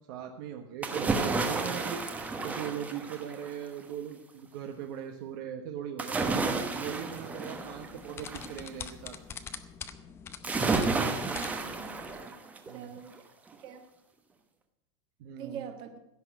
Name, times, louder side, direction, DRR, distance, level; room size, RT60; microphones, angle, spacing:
voice 1, 0.1-2.0 2.4-6.4 6.8-9.2 12.7-12.9 15.2-15.7, right 9 dB, 50° right, 4 dB, 1.2 m, -39 dB
sound 1, 0.8-3.6 6.0-8.6 10.4-12.7 13.1-13.2, right 3 dB, 10° right, 1.1 m, -31 dB
sound 2, 7.5-12.2, left 7 dB, 15° left, 0.7 m, -45 dB
voice 2, 11.3-12.0 12.7-13.1 13.5-13.8 15.4-15.9, right 7 dB, 35° right, 6 dB, 1.6 m, -44 dB
16.0 x 6.2 x 9.3 m, 0.86 s
supercardioid pair, 175°, 15 cm